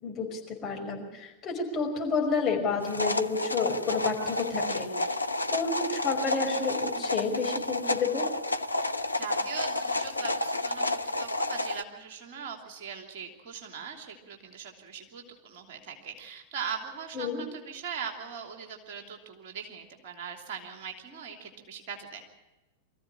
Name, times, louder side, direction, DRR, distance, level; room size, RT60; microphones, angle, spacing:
voice 1, 0.0-4.9 5.5-8.3 17.1-17.4, left 4 dB, 30° left, 0 dB, 5.5 m, -30 dB
sound 1, 2.8-11.8, left 2 dB, 85° left, 0.6 m, -30 dB
voice 2, 8.8-22.2, right 6 dB, 50° right, 4 dB, 3.0 m, -40 dB
24.0 x 15.0 x 8.6 m, 1.1 s
figure-of-eight pair, 90°, 0 cm